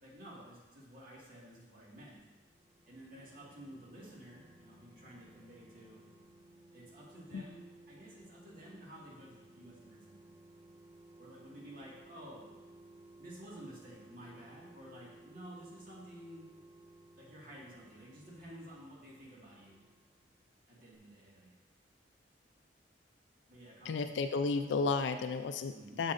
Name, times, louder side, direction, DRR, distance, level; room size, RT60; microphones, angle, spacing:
voice 1, 0.0-2.2 2.9-6.1 6.7-10.2 11.2-12.5 13.2-16.5 17.2-19.8 20.7-21.5 23.5-24.7 25.7-26.1, right 1 dB, 50° right, -5 dB, 1.9 m, -52 dB
sound 1, 2.3-20.7 20.9-21.0, right 2 dB, 25° right, 0.5 m, -59 dB
voice 2, 23.8-26.1, left 4 dB, 80° left, 8 dB, 0.4 m, -33 dB
7.6 x 7.1 x 2.6 m, 1.2 s
head